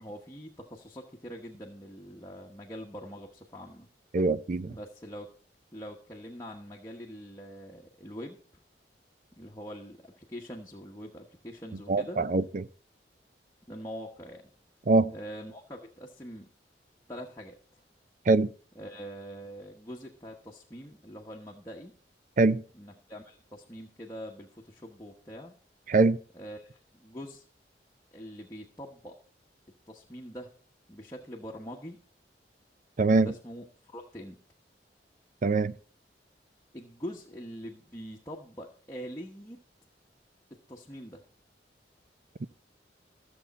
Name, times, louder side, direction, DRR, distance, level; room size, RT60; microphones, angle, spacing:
voice 1, 0.0-3.9 4.6-5.3 5.7-8.4 9.4-12.2 13.7-14.4 15.1-16.5 17.1-17.8 18.7-21.9 22.7-25.5 26.3-27.4 28.1-29.2 29.9-30.5 30.9-32.0 33.2-34.4 36.7-39.6 40.7-41.2, equal, 20° left, 1.1 m, -43 dB
voice 2, 4.1-4.7 11.9-12.7 14.9-15.1 18.3-18.5 22.4-22.6 25.9-26.2 33.0-33.3 35.4-35.7 42.4-42.5, right 3 dB, 45° right, 0.5 m, -23 dB
14.0 x 7.0 x 4.1 m
head